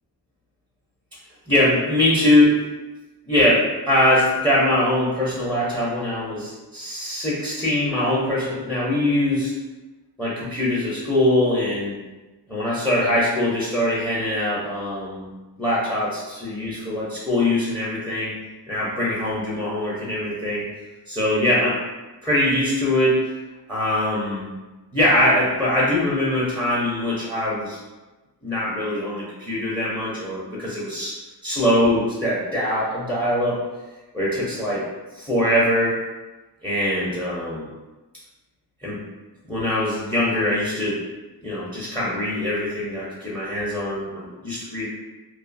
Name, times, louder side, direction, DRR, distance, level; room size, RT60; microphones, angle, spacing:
voice 1, 1.5-2.6 3.3-9.5 10.2-11.9 12.5-15.3 15.6-18.3 18.7-20.6 21.1-21.8 22.2-23.3 23.7-24.5 24.9-27.8 28.4-31.1 31.4-33.6 34.1-34.8 35.1-36.0 36.6-37.7 38.8-39.0 39.5-41.0 41.4-44.9, left 1 dB, 5° left, -8 dB, 0.5 m, -22 dB
2.6 x 2.2 x 2.5 m, 1.2 s
wide cardioid pair, 125°, 42 cm